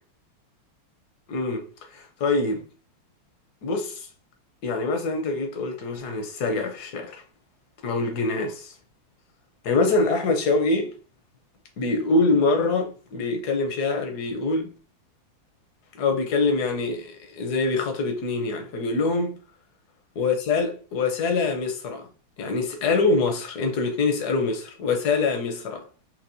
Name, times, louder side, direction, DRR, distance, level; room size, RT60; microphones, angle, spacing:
voice 1, 1.3-2.6 3.6-4.1 4.6-7.2 7.8-8.7 9.6-10.9 11.8-14.7 15.9-19.4 20.2-22.1 22.4-25.9, left 3 dB, 60° left, 1.1 m, -24 dB
4.6 x 2.9 x 2.6 m
omnidirectional pair, 2.4 m